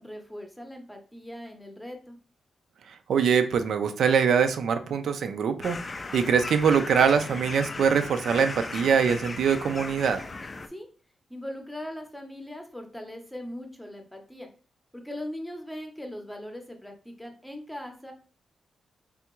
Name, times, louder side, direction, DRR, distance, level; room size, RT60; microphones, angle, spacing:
voice 1, 0.0-2.2 10.7-10.9 11.3-14.5 14.9-18.1, left 1 dB, 5° left, 3 dB, 0.7 m, -40 dB
voice 2, 2.9-10.2, right 6 dB, 70° right, 8 dB, 0.4 m, -23 dB
sound 1, 5.6-10.7, left 3 dB, 25° left, 0.3 m, -37 dB
3.5 x 3.3 x 3.0 m, 0.39 s
wide cardioid pair, 130°, 0 cm